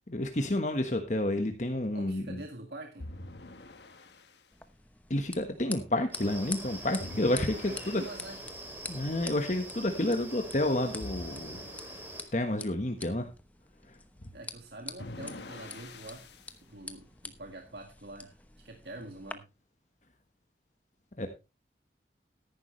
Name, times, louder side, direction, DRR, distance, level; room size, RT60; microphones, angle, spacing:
voice 1, 0.1-2.4 5.1-8.0 8.9-11.6 12.3-13.3 21.2-21.3, left 1 dB, 40° left, 6 dB, 1.3 m, -30 dB
voice 2, 1.9-3.1 7.7-8.4 14.3-18.4 18.6-19.5, right 2 dB, 70° right, 3 dB, 1.9 m, -45 dB
FX Diving (JH), 3.0-4.4 7.0-8.5 11.0-12.4 15.0-16.6, left 2 dB, 75° left, 1.3 m, -45 dB
sound 1, 4.5-19.3, left 3 dB, 10° left, 0.9 m, -47 dB
sound 2, 6.1-12.2, right 1 dB, 10° right, 3.0 m, -44 dB
14.0 x 11.0 x 3.2 m, 0.27 s
head